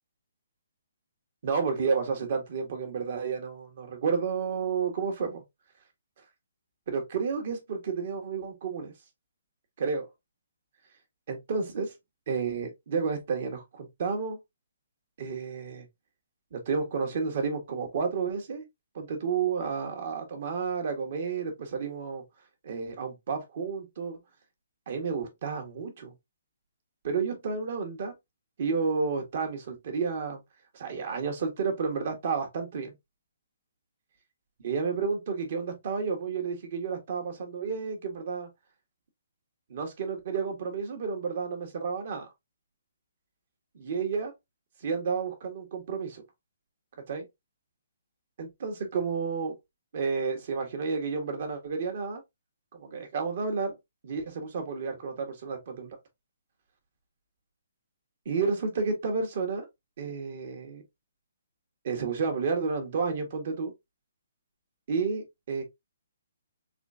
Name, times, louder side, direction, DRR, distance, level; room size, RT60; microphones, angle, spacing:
voice 1, 1.4-5.4 6.9-8.9 9.8-10.1 11.3-11.9 12.3-14.4 15.2-15.8 16.5-18.7 18.9-22.2 22.6-24.2 24.9-26.1 27.0-28.1 28.6-30.4 30.7-32.9 34.6-38.5 39.7-42.3 43.7-44.3 44.8-46.2 47.1-47.2 48.4-49.5 49.9-52.2 52.7-53.8 54.0-56.0 58.2-59.7 60.0-60.8 61.8-63.7 64.9-65.6, right 5 dB, 55° right, 1.5 m, -31 dB
4.2 x 3.3 x 2.6 m
hypercardioid pair, 145°, 0 cm